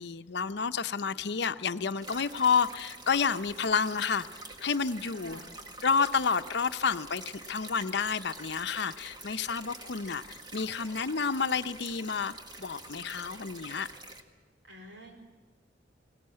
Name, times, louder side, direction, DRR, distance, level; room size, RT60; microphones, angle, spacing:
voice 1, 0.0-4.3 4.6-5.4 5.8-12.3 12.6-13.9, left 5 dB, 65° left, 11 dB, 0.7 m, -30 dB
sound 1, 2.0-14.2, right 2 dB, 25° right, 1.6 m, -47 dB
voice 2, 5.0-5.5 14.7-15.2, right 1 dB, 70° right, 3 dB, 4.4 m, -48 dB
20.0 x 18.5 x 9.7 m, 1.3 s
head